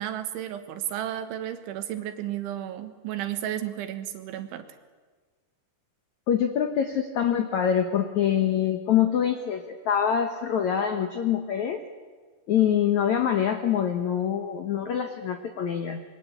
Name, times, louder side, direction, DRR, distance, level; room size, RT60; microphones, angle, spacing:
voice 1, 0.0-4.7, right 11 dB, 90° right, 8 dB, 3.9 m, -33 dB
voice 2, 6.3-11.8 12.5-16.0, left 9 dB, 85° left, 6 dB, 1.6 m, -25 dB
26.0 x 22.5 x 8.3 m, 1.4 s
omnidirectional pair, 5.3 m